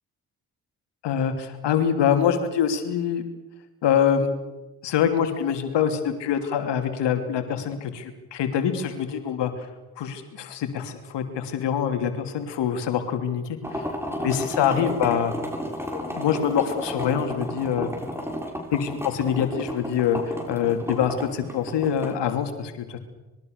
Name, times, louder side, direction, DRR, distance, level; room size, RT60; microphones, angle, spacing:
voice 1, 1.0-3.2 3.8-4.3 4.8-9.5 10.0-13.8 14.2-15.3 15.9-17.9 18.7-23.0, left 8 dB, 70° left, 8 dB, 3.0 m, -25 dB
sound 1, 13.6-22.1, equal, 5° right, 7.4 m, -32 dB
25.5 x 22.0 x 6.7 m, 1.1 s
hypercardioid pair, 50°, 43 cm